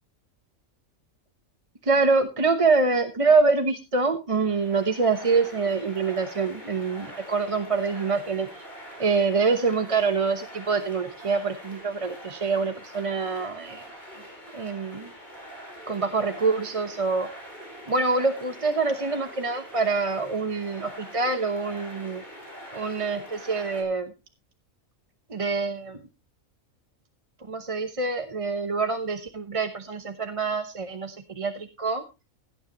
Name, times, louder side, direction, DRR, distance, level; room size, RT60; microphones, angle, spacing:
voice 1, 1.8-8.6 9.0-13.8 14.5-15.1 15.9-17.3 17.9-22.2 22.7-24.1 25.3-26.0 27.5-32.0, right 4 dB, 30° right, 6 dB, 0.9 m, -25 dB
sound 1, 4.3-23.8, equal, 35° left, 4.6 m, -44 dB
16.5 x 9.5 x 2.9 m, 0.28 s
omnidirectional pair, 1.4 m